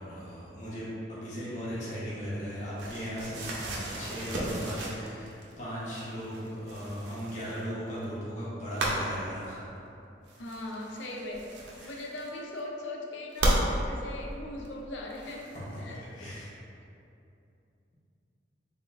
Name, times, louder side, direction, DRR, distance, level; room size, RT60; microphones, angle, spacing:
voice 1, 0.0-9.7 11.8-12.0 15.5-15.8 16.2-16.6, equal, 40° left, -9 dB, 0.9 m, -37 dB
sound 1, 2.8-5.6 5.9-8.0 8.8-9.1 10.3-12.6 13.3-13.6 14.6-14.7 15.1-16.0, right 1 dB, 70° right, 0.6 m, -34 dB
voice 2, 10.4-11.5 11.8-16.3, left 1 dB, 85° left, -1 dB, 0.5 m, -40 dB
3.8 x 3.7 x 2.5 m, 2.7 s
head